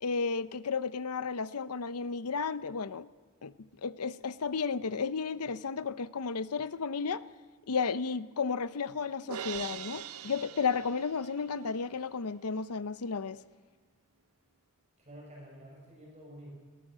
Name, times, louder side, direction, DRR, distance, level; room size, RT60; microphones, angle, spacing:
voice 1, 0.0-3.1 3.4-3.5 3.8-7.2 7.7-13.4, left 5 dB, 85° left, 0.7 m, -33 dB
Crash cymbal, 9.3-11.6, right 9 dB, 75° right, 0.8 m, -42 dB
voice 2, 15.0-16.5, equal, 30° right, 6.7 m, -49 dB
20.5 x 18.0 x 7.6 m
head